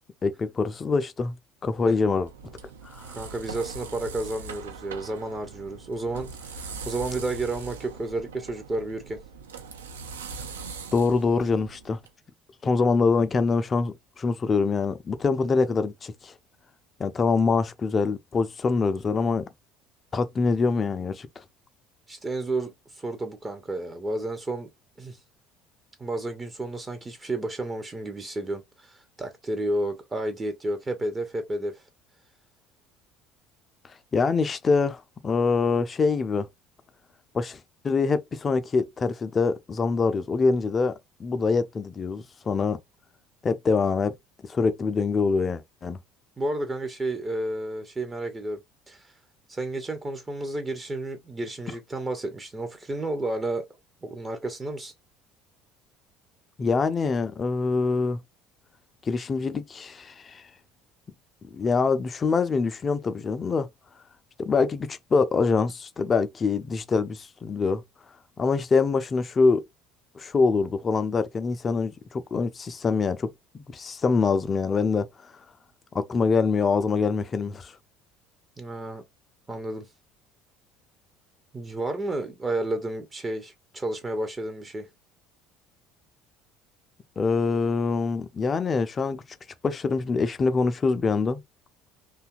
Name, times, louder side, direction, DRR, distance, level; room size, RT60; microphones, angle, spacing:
voice 1, 0.2-1.3 1.6-2.3 2.9-3.1 10.9-12.0 12.6-16.3 17.0-19.4 20.1-21.3 34.1-36.5 37.3-37.6 37.8-40.9 41.2-42.8 43.4-44.1 44.5-46.0 56.6-58.2 59.1-60.4 61.5-63.7 64.4-67.8 68.4-69.6 70.2-73.3 73.5-75.1 75.9-77.7 87.2-89.2 89.6-91.4, left 4 dB, 30° left, 0.4 m, -24 dB
sound 1, 1.7-12.1, right 5 dB, 75° right, 0.3 m, -41 dB
voice 2, 3.1-9.2 22.1-24.7 25.0-25.2 26.0-31.8 46.4-48.6 48.9-49.1 49.5-53.7 54.0-54.9 78.6-79.0 79.5-79.9 81.5-84.9, right 2 dB, 20° right, 0.5 m, -31 dB
2.7 x 2.3 x 2.4 m
figure-of-eight pair, 60°, 0 cm